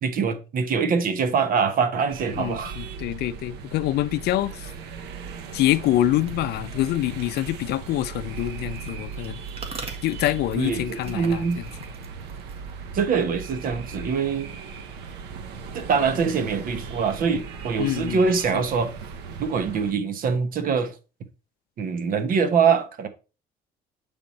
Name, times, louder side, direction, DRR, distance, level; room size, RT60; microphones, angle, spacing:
voice 1, 0.0-2.7 10.5-11.6 12.9-14.5 15.7-18.9 19.4-20.9 21.8-23.1, right 5 dB, 55° right, 1.0 m, -24 dB
sound 1, 2.1-19.9, right 5 dB, 85° right, 0.9 m, -38 dB
voice 2, 2.4-4.7 5.5-9.4 10.0-11.6 17.8-18.2 18.5-18.6, left 14 dB, 75° left, 0.5 m, -25 dB
sound 2, 4.7-13.5, right 3 dB, 35° right, 1.8 m, -46 dB
8.8 x 3.5 x 4.1 m
cardioid pair, 110°, 17 cm